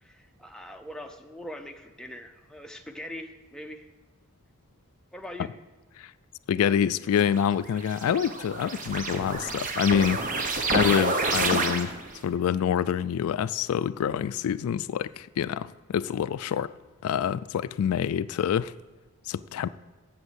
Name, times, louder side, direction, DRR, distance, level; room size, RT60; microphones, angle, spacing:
voice 1, 0.0-3.9 5.1-5.5 14.6-14.7, left 1 dB, 5° left, 0.5 m, -42 dB
voice 2, 6.5-11.9 12.2-16.7 17.0-18.7 19.3-19.7, left 8 dB, 75° left, 0.3 m, -26 dB
sound 1, 7.2-12.2, right 3 dB, 35° right, 0.9 m, -29 dB
8.1 x 7.3 x 8.0 m
head